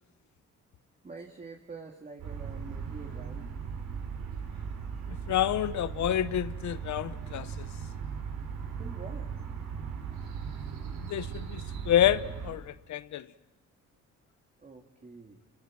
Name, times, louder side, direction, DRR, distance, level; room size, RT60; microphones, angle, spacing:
voice 1, 1.0-3.5 8.8-9.3 14.6-15.4, right 4 dB, 25° right, 2.5 m, -46 dB
sound 1, 2.2-12.5, right 6 dB, 80° right, 4.7 m, -38 dB
voice 2, 5.1-7.7 11.0-13.2, left 11 dB, 70° left, 0.9 m, -29 dB
27.0 x 23.5 x 7.5 m
cardioid pair, 90°, 30 cm